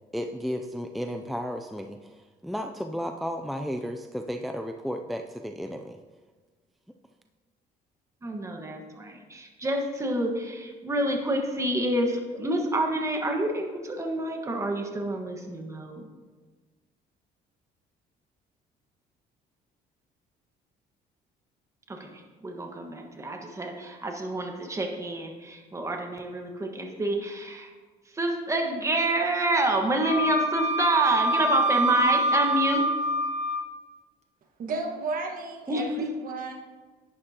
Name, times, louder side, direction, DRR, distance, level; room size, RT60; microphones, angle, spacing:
voice 1, 0.1-6.0, equal, ahead, 5 dB, 0.4 m, -33 dB
voice 2, 8.2-16.1 21.9-27.7 28.1-32.9 35.7-35.8, right 1 dB, 15° right, 2 dB, 1.4 m, -28 dB
Wind instrument woodwind instrument, 30.0-33.7, right 1 dB, 40° right, 0.9 m, -25 dB
voice 3, 34.6-36.5, right 3 dB, 55° right, 2 dB, 1.5 m, -33 dB
11.0 x 9.7 x 2.9 m, 1.4 s
cardioid pair, 110°, 17 cm